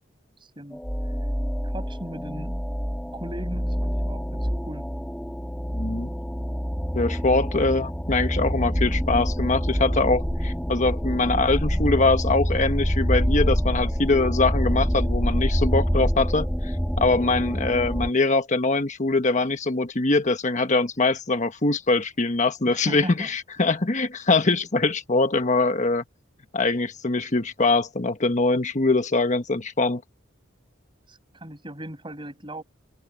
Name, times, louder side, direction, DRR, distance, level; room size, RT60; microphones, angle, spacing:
voice 1, 0.4-1.3 1.6-2.5 3.1-4.9 22.6-23.3 31.1-32.6, right 1 dB, 25° right, 7.8 m, -38 dB
sound 1, 0.7-18.1, equal, 5° left, 1.8 m, -26 dB
voice 2, 5.7-6.1 6.9-16.7 17.0-26.0 26.5-30.0, left 3 dB, 40° left, 1.3 m, -23 dB
open air
head